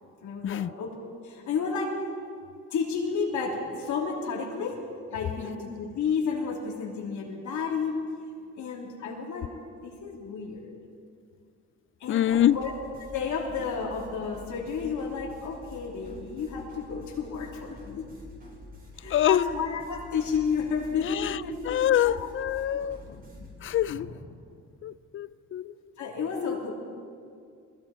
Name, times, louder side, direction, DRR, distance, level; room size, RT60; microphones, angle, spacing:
voice 1, 0.2-2.0 2.7-4.8 5.1-7.9 8.6-9.5 9.8-10.8 12.0-12.7 13.0-18.1 18.9-22.3 23.1-23.5 23.9-24.2 25.6-25.7 26.0-26.7, left 5 dB, 75° left, 3.2 m, -32 dB
voice 2, 12.1-12.6 19.1-19.5 21.0-21.4 21.6-23.0 23.6-24.1 24.8-25.6 26.4-26.6, left 11 dB, 45° left, 0.4 m, -25 dB
sound 1, 12.3-23.5, left 2 dB, 30° right, 5.5 m, -48 dB
21.0 x 16.0 x 4.3 m
cardioid pair, 90°, 30 cm